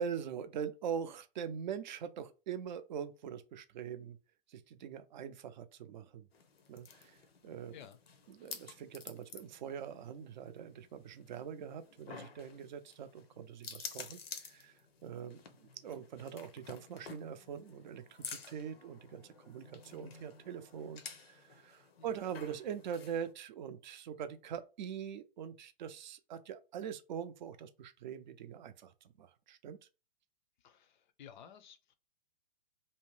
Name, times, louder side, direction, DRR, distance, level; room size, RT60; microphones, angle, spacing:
voice 1, 0.0-4.2 4.5-6.3 6.7-7.2 7.4-7.7 8.3-14.7 15.0-28.9 29.2-29.8, right 8 dB, 50° right, 0.4 m, -43 dB
sound 1, 6.3-23.3, left 6 dB, 85° left, 0.7 m, -51 dB
voice 2, 30.6-31.9, left 8 dB, 55° left, 0.5 m, -54 dB
2.7 x 2.0 x 3.1 m
hypercardioid pair, 135°, 29 cm